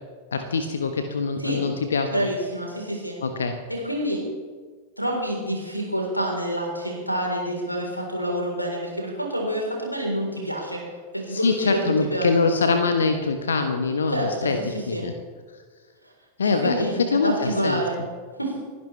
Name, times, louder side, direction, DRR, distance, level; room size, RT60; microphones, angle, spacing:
voice 1, 0.3-2.1 3.2-3.5 11.3-15.1 16.4-16.9 17.1-17.8, left 4 dB, 70° left, 7 dB, 1.1 m, -24 dB
voice 2, 2.1-3.2 3.7-4.2 5.0-10.8 11.1-12.3 14.1-15.1 16.4-18.0 18.4-18.5, right 1 dB, 90° left, 0 dB, 3.9 m, -27 dB
29.0 x 11.0 x 3.3 m, 1.5 s
figure-of-eight pair, 90°, 0 cm